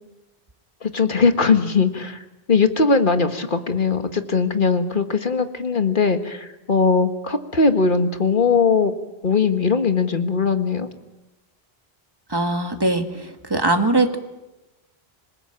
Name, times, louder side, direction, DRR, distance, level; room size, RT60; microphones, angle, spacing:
voice 1, 0.8-8.9 9.2-10.9, left 4 dB, 55° left, 8 dB, 1.8 m, -20 dB
voice 2, 12.3-14.2, right 2 dB, 20° right, 6 dB, 2.0 m, -21 dB
26.5 x 19.5 x 8.8 m, 1.0 s
omnidirectional pair, 1.1 m